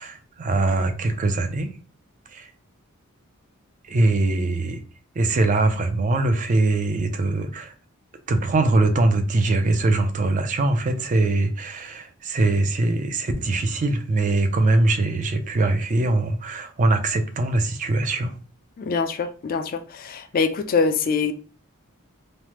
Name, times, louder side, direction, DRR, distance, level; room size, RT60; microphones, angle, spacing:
voice 1, 0.0-1.7 2.3-2.5 3.9-4.8 5.2-7.7 8.3-18.3, right 2 dB, 35° right, 0.4 m, -22 dB
voice 2, 18.8-21.3, left 5 dB, 40° left, 0.3 m, -24 dB
3.2 x 2.1 x 2.9 m
head